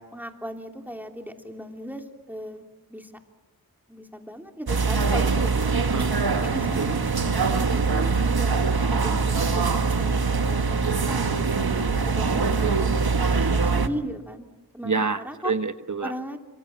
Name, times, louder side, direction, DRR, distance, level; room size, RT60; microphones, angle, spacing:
voice 1, 0.0-2.6 2.9-3.1 3.9-5.9 6.4-7.0 7.5-10.2 10.5-11.6 12.1-13.0 13.3-15.5 16.0-16.4, equal, 5° right, 3 dB, 3.2 m, -37 dB
sound 1, 4.7-13.9, right 4 dB, 75° right, 1.6 m, -23 dB
voice 2, 5.8-6.5 6.8-6.9 14.8-16.1, right 4 dB, 50° right, 9 dB, 1.2 m, -28 dB
27.5 x 25.0 x 7.4 m, 1.1 s
wide cardioid pair, 50°, 37 cm